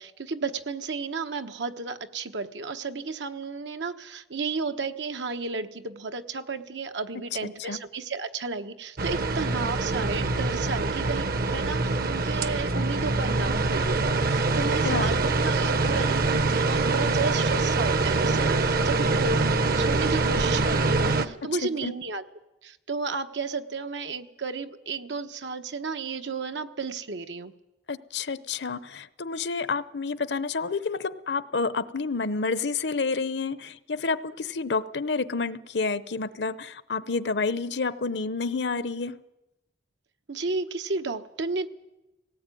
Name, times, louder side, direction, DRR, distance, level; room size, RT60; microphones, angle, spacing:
voice 1, 0.0-22.2 22.6-27.5 40.3-41.7, right 4 dB, 85° right, 7 dB, 1.2 m, -33 dB
sound 1, 9.0-21.3, right 3 dB, 55° right, 0.9 m, -24 dB
voice 2, 21.6-21.9 27.9-39.2, left 4 dB, 70° left, 16 dB, 0.8 m, -29 dB
18.5 x 18.0 x 9.2 m, 1.0 s
head